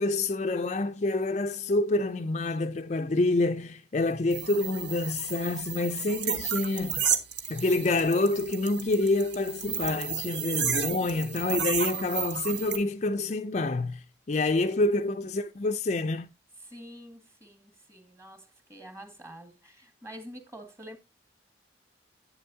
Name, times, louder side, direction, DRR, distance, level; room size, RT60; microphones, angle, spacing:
voice 1, 0.0-7.1 7.5-16.3, left 2 dB, 40° left, 0.5 m, -27 dB
sound 1, 4.3-12.8, right 7 dB, 75° right, 1.4 m, -32 dB
voice 2, 16.6-21.0, equal, 15° right, 1.9 m, -47 dB
11.0 x 8.4 x 2.7 m
head